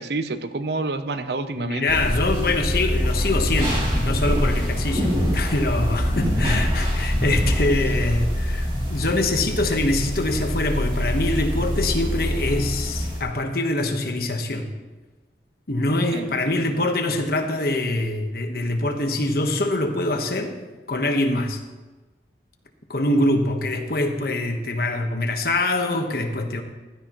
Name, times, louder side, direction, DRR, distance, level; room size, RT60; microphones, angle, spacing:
voice 1, 0.0-2.0 6.2-6.4 16.1-16.7, right 3 dB, 70° right, 10 dB, 0.7 m, -29 dB
voice 2, 1.6-14.7 15.7-20.5 20.9-21.6 22.9-26.6, left 2 dB, 55° left, 5 dB, 1.3 m, -24 dB
sound 1, 1.9-13.2, equal, 30° right, 3.1 m, -24 dB
15.5 x 13.0 x 3.1 m, 1.2 s
head